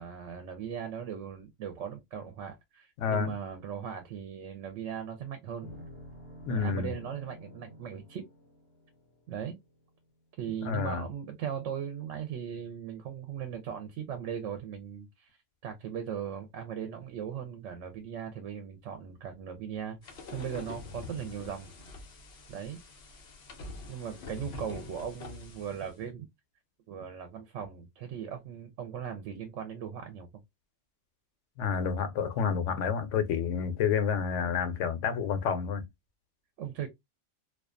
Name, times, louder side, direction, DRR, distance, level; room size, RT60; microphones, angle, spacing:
voice 1, 0.0-5.7 6.5-8.2 9.3-9.6 10.4-15.4 15.6-21.7 22.5-22.8 23.9-26.3 26.9-30.3 36.6-36.9, right 8 dB, 80° right, 0.9 m, -38 dB
voice 2, 3.0-3.3 6.5-6.9 10.6-11.1 31.6-35.9, left 6 dB, 90° left, 0.9 m, -29 dB
sound 1, 5.6-10.0, equal, 45° right, 1.2 m, -49 dB
sound 2, 20.0-25.9, left 3 dB, 65° left, 0.9 m, -45 dB
2.4 x 2.3 x 2.4 m
omnidirectional pair, 1.2 m